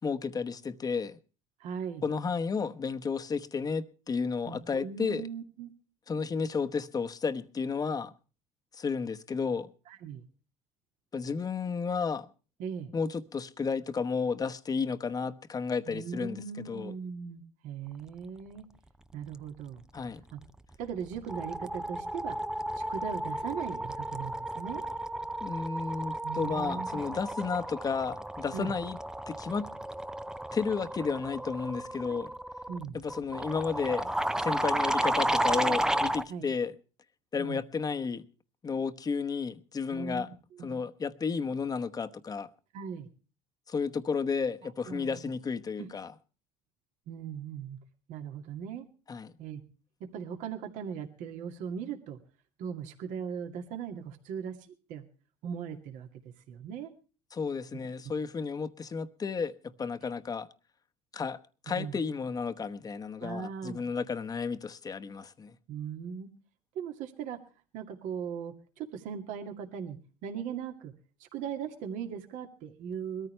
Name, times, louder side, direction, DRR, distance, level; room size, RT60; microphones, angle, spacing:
voice 1, 0.0-1.2 2.0-5.3 6.1-8.1 8.8-9.7 11.1-12.3 12.9-16.9 19.9-20.2 25.4-29.0 29.3-29.7 30.5-32.3 32.9-34.1 34.4-36.7 37.3-38.2 38.6-40.3 40.6-42.5 43.7-46.1 49.1-49.3 57.3-60.5 61.1-61.4 61.7-65.6, left 5 dB, 30° left, 1.1 m, -32 dB
voice 2, 1.6-2.0 4.5-5.7 9.9-10.2 12.6-12.9 15.9-18.7 19.1-19.9 20.3-20.4 20.8-22.4 22.8-24.9 26.2-27.3 28.5-28.7 32.0-32.2 32.7-33.0 36.3-36.4 37.4-37.6 39.9-40.2 40.6-40.8 42.7-43.1 44.9-45.2 45.8-45.9 47.1-47.8 48.1-48.8 49.4-49.6 50.0-52.2 52.6-54.6 54.9-55.0 55.4-56.1 56.5-56.9 61.8-62.0 63.2-63.8 65.7-66.3 66.7-67.4 67.7-70.9 71.2-73.3, right 7 dB, 70° right, 2.3 m, -39 dB
sound 1, 20.4-20.7 21.0-36.3, right 1 dB, 5° right, 0.6 m, -33 dB
21.5 x 14.0 x 3.3 m
supercardioid pair, 90°, 14 cm